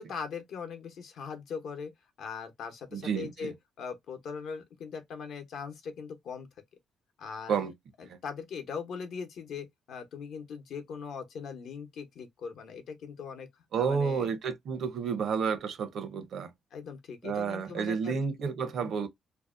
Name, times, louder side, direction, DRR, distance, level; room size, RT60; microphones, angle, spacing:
voice 1, 0.0-1.9 2.2-6.5 7.2-7.6 8.0-13.5 13.8-14.3 16.7-18.2 18.6-19.0, left 6 dB, 75° left, 0.7 m, -40 dB
voice 2, 2.9-3.5 7.5-7.7 8.0-8.2 13.7-16.5 17.2-19.1, right 6 dB, 65° right, 0.6 m, -31 dB
2.7 x 2.1 x 2.4 m
cardioid pair, 90°, 0 cm